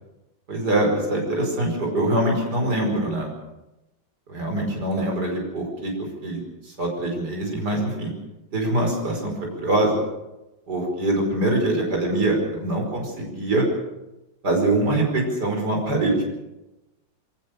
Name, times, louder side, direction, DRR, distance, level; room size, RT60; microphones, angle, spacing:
voice 1, 0.5-3.3 4.3-8.1 8.5-10.0 10.7-13.7 14.4-16.2, right 1 dB, 60° right, 1 dB, 5.8 m, -24 dB
23.0 x 19.0 x 6.7 m, 0.98 s
omnidirectional pair, 2.0 m